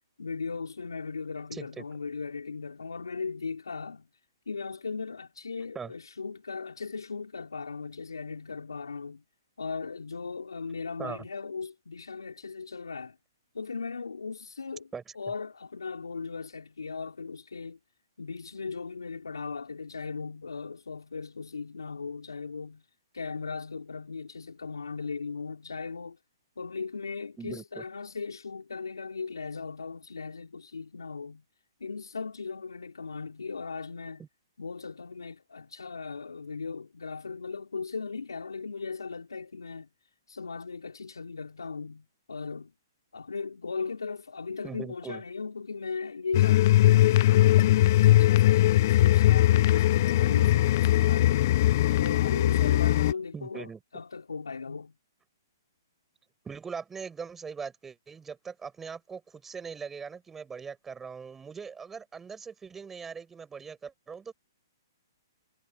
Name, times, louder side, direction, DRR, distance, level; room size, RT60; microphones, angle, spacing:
voice 1, 0.2-4.1 4.5-9.2 9.6-13.2 13.5-17.8 18.2-22.8 23.1-26.2 26.6-31.4 31.8-34.2 34.6-39.9 40.3-42.7 43.1-47.6 48.0-51.6 52.0-54.9, left 4 dB, 90° left, 5.1 m, -38 dB
voice 2, 1.5-1.8 5.7-5.9 11.0-11.3 14.9-15.0 27.4-27.8 34.2-34.3 44.6-45.2 53.3-53.8 56.4-64.3, right 6 dB, 10° right, 5.7 m, -40 dB
sound 1, 46.3-53.1, left 14 dB, 45° left, 0.4 m, -20 dB
hypercardioid pair, 135°, 2 cm